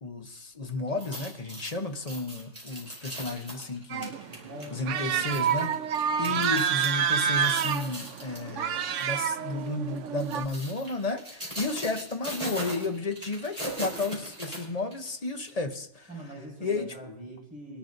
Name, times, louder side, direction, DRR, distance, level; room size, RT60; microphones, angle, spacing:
voice 1, 0.0-4.4 4.7-5.7 6.2-16.1 16.6-17.2, left 3 dB, 35° left, 5 dB, 0.9 m, -33 dB
sound 1, 0.9-6.9 7.3-8.5 8.9-9.1 10.0-15.1 15.5-15.6, right 1 dB, 25° right, 4.6 m, -39 dB
sound 2, 3.9-10.4, right 8 dB, 85° right, 1.0 m, -28 dB
voice 2, 4.2-5.7 6.1-6.5 16.1-17.8, right 1 dB, 5° right, -5 dB, 5.8 m, -43 dB
23.0 x 11.5 x 2.6 m, 0.81 s
omnidirectional pair, 1.2 m